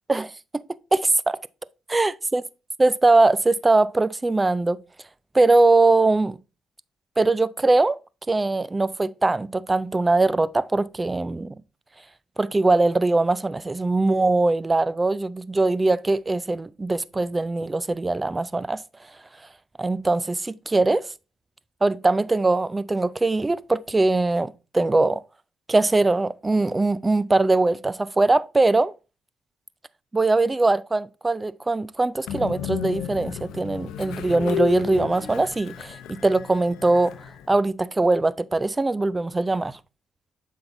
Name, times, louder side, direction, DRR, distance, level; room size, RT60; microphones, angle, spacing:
voice 1, 0.9-1.4 1.9-2.4 2.8-4.8 5.3-6.4 7.2-8.0 8.3-11.6 12.4-18.8 19.8-21.1 21.8-25.2 25.7-28.9 30.1-36.0 36.2-37.2 37.5-39.8, right 2 dB, 20° right, 0.4 m, -21 dB
Train, 32.3-37.6, left 10 dB, 85° left, 0.7 m, -33 dB
7.8 x 5.7 x 2.6 m
cardioid pair, 90°, 0 cm